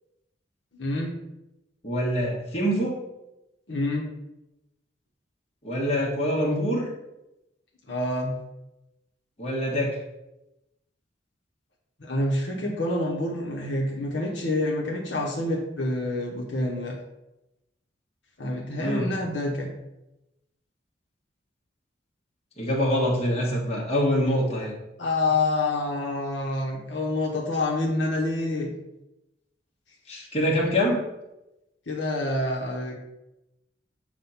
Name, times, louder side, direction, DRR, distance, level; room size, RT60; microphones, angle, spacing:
voice 1, 0.7-1.2 3.7-4.1 7.9-8.4 12.0-17.0 18.4-19.7 25.0-28.7 31.9-32.9, left 2 dB, 75° left, -2 dB, 1.2 m, -27 dB
voice 2, 1.8-2.9 5.6-6.9 9.4-10.0 18.8-19.1 22.6-24.8 30.1-31.0, equal, 35° left, -3 dB, 1.4 m, -25 dB
7.5 x 2.6 x 5.6 m, 0.92 s
head